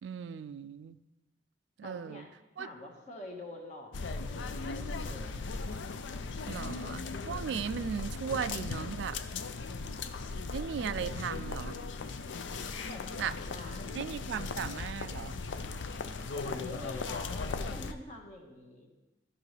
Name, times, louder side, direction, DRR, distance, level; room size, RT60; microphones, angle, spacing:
voice 1, 0.0-1.0 1.8-2.2 2.6-2.7 6.5-9.2 10.5-11.8 13.2-13.3 13.9-15.3, right 7 dB, 70° right, 14 dB, 0.3 m, -37 dB
voice 2, 1.8-2.3 2.6-5.4 12.9-13.9 16.3-18.9, left 1 dB, 40° left, 0 dB, 1.5 m, -46 dB
sound 1, 3.9-17.9, left 4 dB, 90° left, 0.5 m, -38 dB
14.5 x 5.5 x 3.3 m, 1.1 s
head